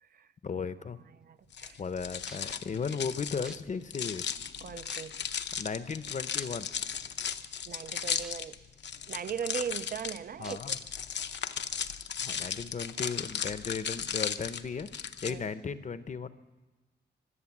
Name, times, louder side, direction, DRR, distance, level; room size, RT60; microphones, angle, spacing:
voice 1, 0.4-1.0 1.8-4.3 5.6-6.7 10.4-10.8 12.2-16.3, left 5 dB, 45° left, 0.6 m, -36 dB
voice 2, 1.2-1.8 4.6-5.1 7.7-8.6 9.1-10.6 15.2-15.5, right 7 dB, 55° right, 0.4 m, -38 dB
sound 1, 1.5-15.3, left 7 dB, 85° left, 0.7 m, -36 dB
sound 2, 1.9-2.0 2.3-2.5 3.4-3.6 4.3-4.4 4.9-5.3 6.4-6.5 8.2-8.3 8.8-8.9 10.4-10.6 11.3-11.4, equal, 5° right, 0.6 m, -46 dB
24.0 x 8.4 x 7.2 m
wide cardioid pair, 155°, 18 cm